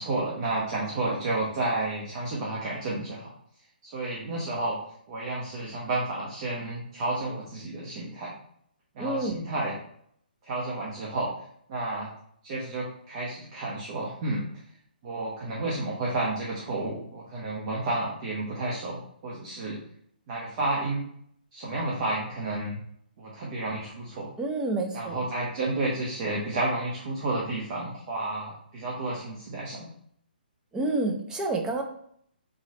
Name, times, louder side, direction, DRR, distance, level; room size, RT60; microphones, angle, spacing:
voice 1, 0.0-3.3 3.8-4.8 5.1-8.3 8.9-9.8 10.4-11.3 11.7-12.1 12.4-14.4 15.0-19.8 20.3-21.0 21.5-22.8 23.2-24.3 24.9-29.9, right 2 dB, 35° right, -4 dB, 0.9 m, -31 dB
voice 2, 9.0-9.4 24.4-25.3 30.7-31.8, right 2 dB, 10° right, 2 dB, 0.5 m, -29 dB
3.9 x 3.1 x 4.0 m, 0.67 s
hypercardioid pair, 145°, 5 cm